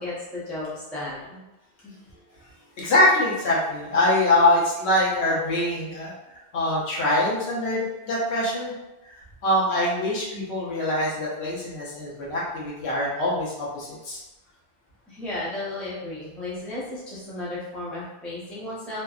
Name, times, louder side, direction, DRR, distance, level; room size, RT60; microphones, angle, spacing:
voice 1, 0.0-1.4 1.8-1.9 15.1-19.0, left 2 dB, ahead, -8 dB, 0.4 m, -34 dB
voice 2, 2.8-6.1 6.5-8.7 9.4-14.2, left 1 dB, 75° left, -6 dB, 1.0 m, -23 dB
2.7 x 2.1 x 2.3 m, 1.0 s
omnidirectional pair, 1.1 m